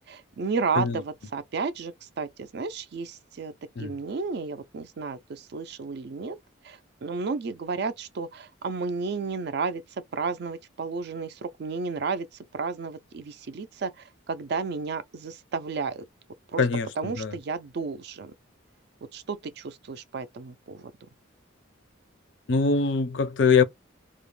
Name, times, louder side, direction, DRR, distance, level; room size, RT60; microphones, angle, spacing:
voice 1, 0.1-3.5 3.8-6.4 6.6-9.8 10.1-12.3 12.5-16.0 16.5-16.6 17.0-18.3 19.1-20.9, right 4 dB, 55° right, 0.3 m, -32 dB
voice 2, 16.6-17.4 22.5-23.6, left 5 dB, 65° left, 0.4 m, -23 dB
2.4 x 2.1 x 3.0 m
head